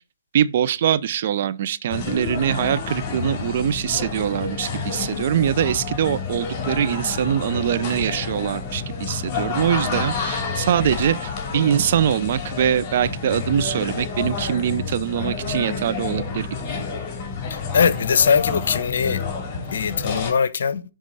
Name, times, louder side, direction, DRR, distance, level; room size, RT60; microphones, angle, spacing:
voice 1, 0.3-16.5, right 9 dB, 50° right, 0.5 m, -23 dB
sound 1, 1.9-20.3, left 5 dB, 30° left, 2.9 m, -29 dB
voice 2, 17.5-19.2 19.7-20.8, left 6 dB, 60° left, 0.8 m, -21 dB
10.5 x 3.7 x 5.4 m
figure-of-eight pair, 130°, 0 cm